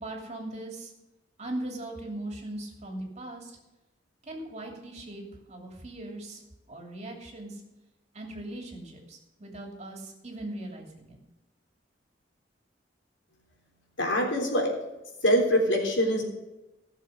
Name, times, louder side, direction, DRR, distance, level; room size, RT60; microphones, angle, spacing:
voice 1, 0.0-0.9 1.4-3.6 4.2-6.4 6.7-7.6 8.1-11.2, right 1 dB, 35° right, 1 dB, 2.9 m, -39 dB
voice 2, 14.0-14.7 15.2-16.2, equal, 80° left, 0 dB, 3.6 m, -24 dB
16.0 x 6.9 x 6.5 m, 1.0 s
head